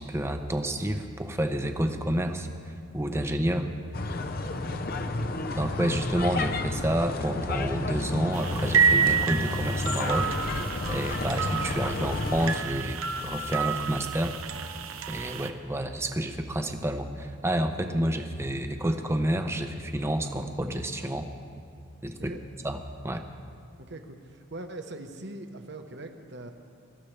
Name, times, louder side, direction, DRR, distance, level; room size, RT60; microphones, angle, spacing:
voice 1, 0.0-3.7 5.5-14.3 15.1-21.3 22.0-22.3 22.6-22.8 23.0-23.2, right 1 dB, 15° right, 6 dB, 0.8 m, -29 dB
sound 1, 3.9-12.6, left 2 dB, 45° left, 0.7 m, -31 dB
sound 2, 8.3-15.5, right 6 dB, 85° right, 0.8 m, -29 dB
voice 2, 23.8-26.5, right 2 dB, 55° right, 6 dB, 1.1 m, -41 dB
24.0 x 13.5 x 3.4 m, 2.5 s
head